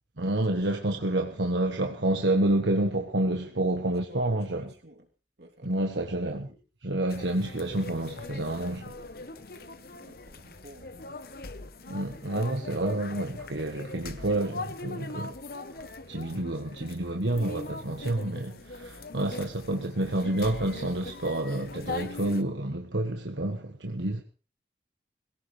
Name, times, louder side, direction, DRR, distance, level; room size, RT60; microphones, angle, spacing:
voice 1, 0.2-4.7 5.6-6.5 6.8-8.9 11.9-15.4 15.8-24.2, right 1 dB, 80° right, 1.4 m, -29 dB
voice 2, 3.4-5.1 5.4-5.9 6.4-6.6 8.1-11.1, right 1 dB, 65° right, 3.1 m, -52 dB
sound 1, 7.1-22.4, left 3 dB, 55° left, 1.1 m, -41 dB
22.5 x 17.0 x 3.3 m
head